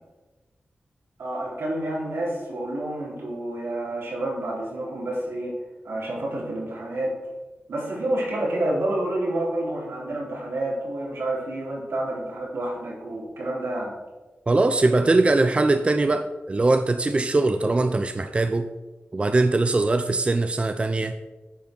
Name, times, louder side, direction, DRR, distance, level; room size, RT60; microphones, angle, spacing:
voice 1, 1.2-5.5 5.8-7.2 7.7-13.9, right 1 dB, 85° right, -4 dB, 3.7 m, -29 dB
voice 2, 14.5-18.7 19.1-21.1, right 2 dB, 30° right, 8 dB, 0.5 m, -21 dB
8.7 x 6.0 x 6.1 m, 1.1 s
wide cardioid pair, 100°, 4 cm